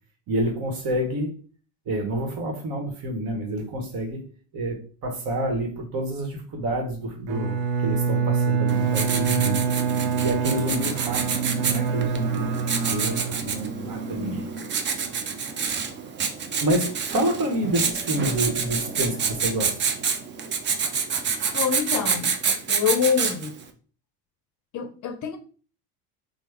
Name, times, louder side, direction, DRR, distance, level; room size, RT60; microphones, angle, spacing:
voice 1, 0.3-1.3 1.9-4.2 4.5-9.7 10.2-12.5 12.9-14.5 16.6-19.9, right 1 dB, 45° right, 1.1 m, -28 dB
Bowed string instrument, 7.3-13.9, right 6 dB, 70° right, 0.7 m, -26 dB
Writing, 8.7-23.6, right 5 dB, 25° right, 0.4 m, -28 dB
voice 2, 14.1-14.4 21.5-22.3 22.7-23.5 24.7-25.4, left 7 dB, 40° left, 0.6 m, -26 dB
3.3 x 2.1 x 3.3 m
hypercardioid pair, 75°, 48 cm